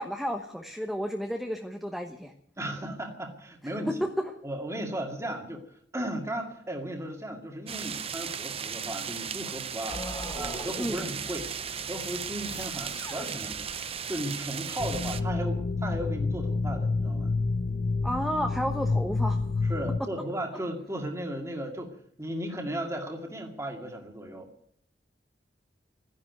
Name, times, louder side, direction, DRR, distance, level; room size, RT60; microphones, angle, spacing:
voice 1, 0.0-2.3 4.0-4.1 10.8-11.1 18.0-19.4, equal, ahead, 3 dB, 1.1 m, -32 dB
voice 2, 2.6-3.9 4.4-5.6 5.9-10.0 10.3-11.5 11.8-17.3 19.7-24.5, right 1 dB, 15° right, 2 dB, 2.1 m, -36 dB
sound 1, 7.7-15.2, right 7 dB, 35° right, 0.7 m, -36 dB
sound 2, 9.9-14.0, left 1 dB, 20° left, 2.3 m, -42 dB
sound 3, 14.8-20.0, left 3 dB, 50° left, 0.7 m, -28 dB
13.5 x 11.0 x 9.3 m, 0.65 s
head